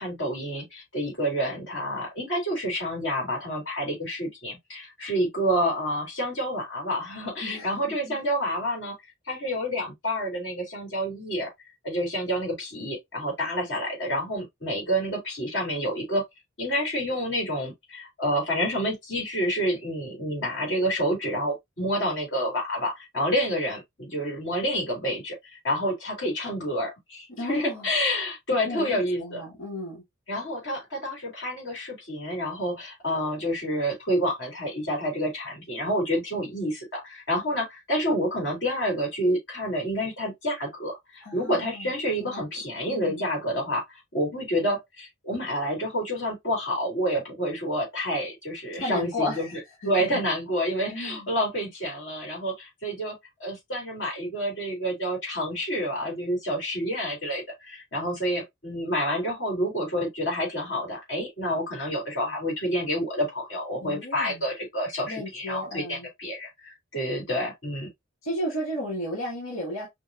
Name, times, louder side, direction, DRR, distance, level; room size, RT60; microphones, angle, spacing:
voice 1, 0.0-8.9 9.3-11.5 11.8-16.2 16.6-29.4 30.3-67.9, equal, 55° left, 2.7 m, -28 dB
voice 2, 7.4-8.2 27.3-27.9 28.6-30.0 41.2-41.9 42.2-42.4 42.9-43.2 48.8-50.2 50.9-51.3 63.8-64.4 65.1-66.1 68.2-69.9, left 1 dB, 80° left, 1.7 m, -34 dB
5.1 x 2.7 x 2.5 m
head